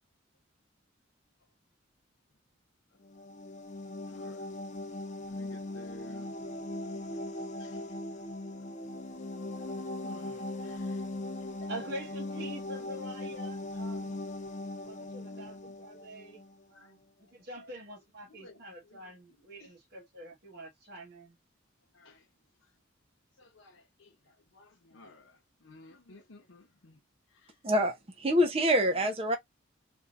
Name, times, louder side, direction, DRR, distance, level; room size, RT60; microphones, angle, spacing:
sound 1, 3.0-16.6, left 2 dB, 35° left, 0.6 m, -39 dB
voice 1, 4.0-4.5 5.3-6.3 7.6-7.8 10.0-11.0 11.4-11.7 15.2-15.8 16.7-16.9 17.6-17.7 18.3-18.6 18.9-19.1 19.6-19.7 21.9-22.3 23.4-27.0 27.3-27.5 28.3-28.4 28.8-29.1, left 2 dB, 90° left, 0.8 m, -55 dB
voice 2, 11.7-14.2 14.8-16.4 16.7-21.4, right 1 dB, 55° right, 1.3 m, -45 dB
voice 3, 27.6-29.4, equal, 30° right, 0.6 m, -26 dB
3.7 x 2.6 x 2.4 m
head